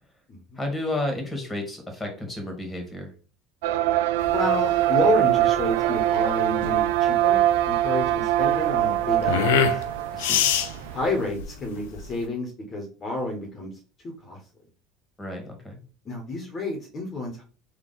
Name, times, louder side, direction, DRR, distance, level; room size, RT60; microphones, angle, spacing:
voice 1, 0.6-3.1 10.1-10.4 15.2-15.8, left 1 dB, 15° left, 3 dB, 1.8 m, -32 dB
sound 1, 3.6-11.2, right 13 dB, 75° right, 0.3 m, -23 dB
sound 2, 4.2-12.2, left 8 dB, 80° left, 0.5 m, -27 dB
voice 2, 4.3-7.4 7.7-9.5 10.9-13.7 14.2-14.4 16.0-17.4, left 2 dB, 35° left, 1 dB, 1.3 m, -30 dB
3.7 x 2.8 x 4.1 m, 0.36 s
hypercardioid pair, 80°, 0 cm